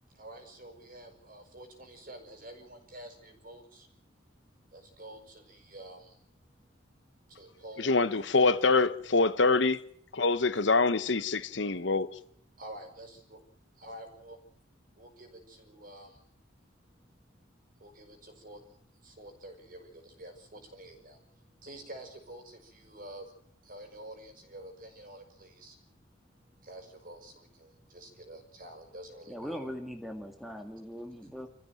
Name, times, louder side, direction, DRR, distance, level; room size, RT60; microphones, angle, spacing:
voice 1, 0.1-3.9 4.7-6.4 6.8-8.0 12.1-13.4 13.8-14.4 15.0-16.2 17.7-23.3 23.6-26.0 26.3-29.7 31.2-31.3, right 1 dB, 45° right, 5.7 m, -49 dB
voice 2, 7.8-9.8 10.1-12.1, left 3 dB, 70° left, 1.1 m, -25 dB
voice 3, 29.3-31.5, equal, ahead, 2.0 m, -40 dB
27.0 x 15.0 x 9.1 m
head